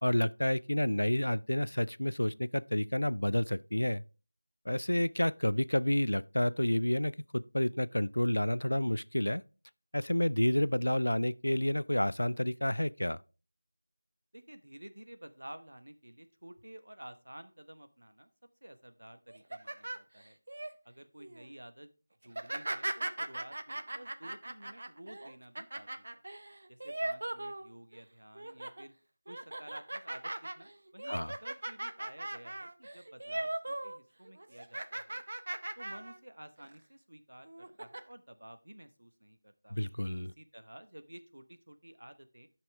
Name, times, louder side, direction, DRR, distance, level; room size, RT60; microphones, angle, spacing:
voice 1, 0.0-4.0 4.7-9.4 9.9-13.2 31.1-31.3 39.7-40.3, left 1 dB, 75° left, 0.4 m, -30 dB
voice 2, 14.3-18.3 18.6-20.4 20.8-21.9 22.2-26.2 26.7-28.9 29.3-35.2 35.8-39.8 40.4-42.5, right 1 dB, 65° right, 1.1 m, -52 dB
sound 1, 19.3-20.7 21.2-21.5 22.3-28.0 28.3-28.8 29.3-34.0 34.2-36.2 36.6-36.7 37.5-38.0, right 1 dB, 50° right, 0.6 m, -39 dB
11.0 x 6.0 x 3.4 m
figure-of-eight pair, 170°, 0 cm